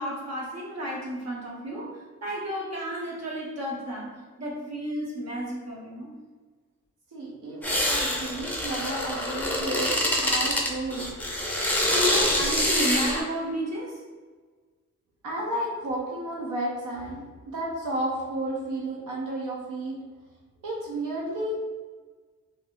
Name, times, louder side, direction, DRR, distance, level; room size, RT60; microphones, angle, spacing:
voice 1, 0.0-6.1 11.9-14.0, equal, 55° right, -3 dB, 0.9 m, -32 dB
voice 2, 7.1-9.9 10.2-11.1 15.2-20.0 20.6-21.6, right 1 dB, 85° right, -3 dB, 0.6 m, -32 dB
sound 1, 7.6-13.2, left 1 dB, 5° left, 0.5 m, -25 dB
3.4 x 2.6 x 2.5 m, 1.4 s
wide cardioid pair, 140°, 31 cm